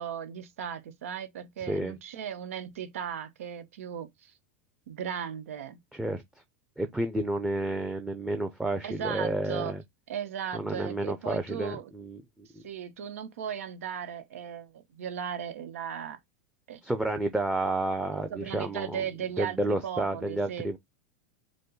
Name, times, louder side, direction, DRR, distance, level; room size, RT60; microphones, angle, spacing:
voice 1, 0.0-4.3 4.9-5.8 8.8-9.7 10.1-11.9 12.6-16.2 16.7-16.8 18.3-20.8, right 8 dB, 85° right, 0.9 m, -37 dB
voice 2, 5.9-6.2 6.8-9.8 10.5-12.6 16.8-19.0 19.4-20.8, right 1 dB, 5° right, 0.6 m, -30 dB
5.2 x 2.1 x 3.8 m
supercardioid pair, 120°, 7 cm